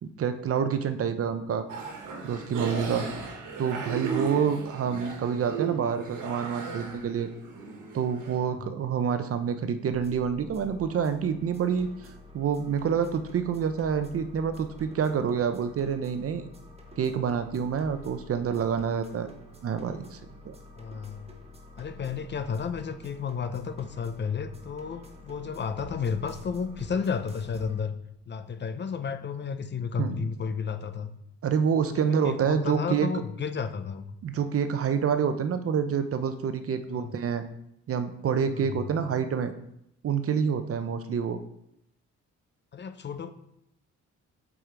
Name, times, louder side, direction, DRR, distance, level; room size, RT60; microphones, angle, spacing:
voice 1, 0.0-1.7 2.2-3.1 3.6-7.3 7.9-11.9 12.3-16.5 17.0-19.3 19.6-20.5 30.0-30.2 31.4-33.1 34.2-37.4 37.9-39.5 40.0-41.4, right 7 dB, 50° right, 10 dB, 0.7 m, -27 dB
sound 1, 1.7-8.4, right 5 dB, 85° right, 1.3 m, -35 dB
sound 2, 9.8-27.8, equal, 20° right, 1.3 m, -48 dB
voice 2, 20.7-21.3 21.8-28.0 28.3-31.1 31.9-34.1 36.9-37.2 38.5-38.9 42.7-43.3, left 6 dB, 35° left, 10 dB, 0.6 m, -32 dB
7.7 x 5.0 x 3.8 m, 0.78 s
cardioid pair, 90°, 30 cm